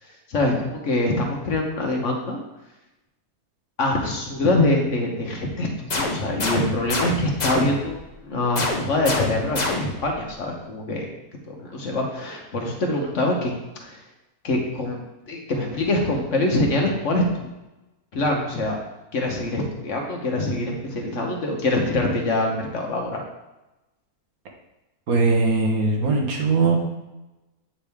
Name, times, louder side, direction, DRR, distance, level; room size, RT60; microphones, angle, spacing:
voice 1, 0.3-2.4 3.8-11.1 11.5-13.5 13.8-14.0 14.4-15.0 15.3-17.5 18.1-18.8 19.1-23.2, left 2 dB, 55° left, 1 dB, 1.3 m, -24 dB
sound 1, 5.9-8.0 8.6-10.1, left 2 dB, 35° left, 0.8 m, -27 dB
voice 2, 25.1-26.8, right 3 dB, 70° right, 1 dB, 1.6 m, -20 dB
8.7 x 5.0 x 3.5 m, 1.0 s
omnidirectional pair, 1.6 m